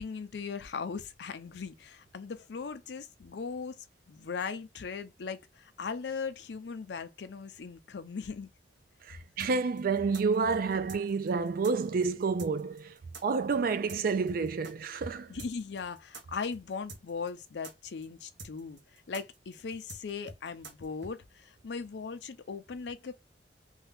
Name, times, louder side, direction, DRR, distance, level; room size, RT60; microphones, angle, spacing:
voice 1, 0.0-8.5 15.3-23.1, left 5 dB, 70° left, 0.5 m, -39 dB
voice 2, 9.0-12.9 13.2-15.3, right 4 dB, 55° right, 0.4 m, -29 dB
sound 1, 9.4-14.7 15.0-15.1 15.4-21.1, right 3 dB, 90° right, 0.9 m, -47 dB
2.7 x 2.3 x 3.3 m
head